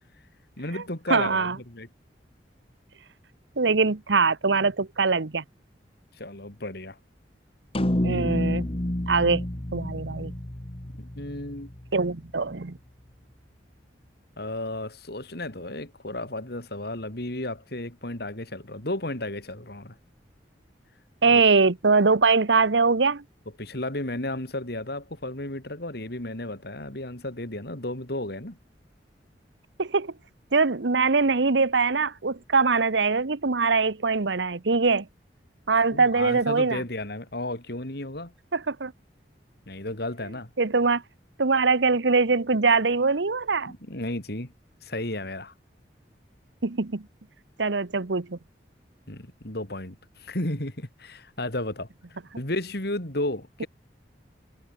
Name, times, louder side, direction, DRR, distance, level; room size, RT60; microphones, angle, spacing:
voice 1, 0.6-1.9 6.2-7.0 11.0-11.7 14.4-20.0 21.3-21.4 23.6-28.6 35.9-38.3 39.7-40.5 43.7-44.5 44.8-45.5 49.1-51.9 52.4-53.7, left 1 dB, 60° left, 3.9 m, -33 dB
voice 2, 1.1-1.6 3.6-5.4 8.0-8.7 9.1-9.5 9.7-10.3 11.9-12.8 21.2-23.2 29.8-30.1 30.5-35.1 35.7-36.8 38.5-38.9 40.6-41.0 41.4-43.7 46.6-47.0 47.6-48.4, right 4 dB, 85° right, 1.0 m, -22 dB
sound 1, 7.7-12.2, left 1 dB, 30° left, 1.8 m, -29 dB
head